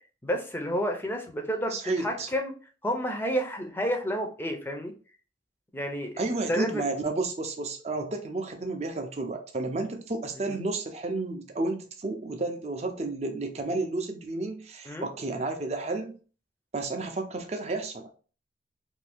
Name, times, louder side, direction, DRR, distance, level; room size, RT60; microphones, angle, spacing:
voice 1, 0.2-2.5 2.8-4.9 5.7-6.2 6.5-6.8 10.5-10.6 14.9-15.1, equal, 10° left, 0.5 m, -30 dB
voice 2, 1.7-2.3 6.2-16.2 16.7-18.1, right 2 dB, 35° right, 0.5 m, -31 dB
2.7 x 2.6 x 3.4 m
head